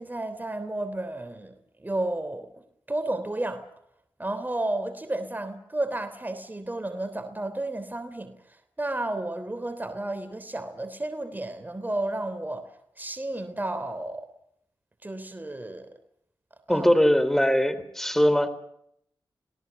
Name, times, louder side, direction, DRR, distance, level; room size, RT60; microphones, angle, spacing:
voice 1, 0.0-1.5 1.8-3.6 4.2-14.3 15.0-15.9 16.7-16.9, right 2 dB, 20° right, 10 dB, 3.4 m, -32 dB
voice 2, 16.7-18.5, equal, 5° left, 14 dB, 3.3 m, -21 dB
29.5 x 18.5 x 7.1 m, 0.72 s
cardioid pair, 50°, 9 cm